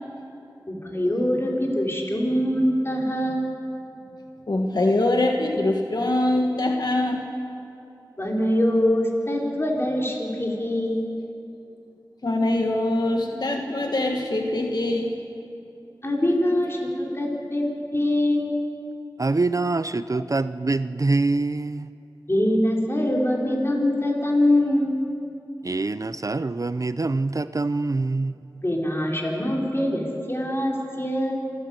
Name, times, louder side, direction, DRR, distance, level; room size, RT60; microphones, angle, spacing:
voice 1, 0.7-3.5 8.2-11.0 16.0-17.6 17.9-18.6 22.3-24.9 28.6-31.3, left 1 dB, 30° left, -2 dB, 4.7 m, -23 dB
voice 2, 4.5-7.2 12.2-15.1, left 1 dB, 60° left, 2 dB, 1.5 m, -23 dB
voice 3, 19.2-21.9 25.6-28.6, right 3 dB, 45° right, 14 dB, 0.5 m, -25 dB
27.5 x 12.5 x 8.2 m, 2.7 s
wide cardioid pair, 40°, 8 cm